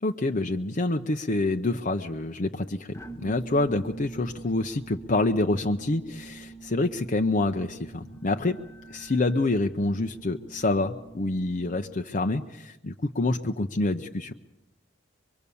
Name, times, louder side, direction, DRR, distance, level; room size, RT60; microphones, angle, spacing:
voice 1, 0.0-8.6 8.9-14.3, left 2 dB, 40° left, 5 dB, 0.7 m, -27 dB
sound 1, 2.9-12.2, right 4 dB, 15° left, 1.2 m, -45 dB
24.0 x 23.0 x 7.0 m, 1.0 s
head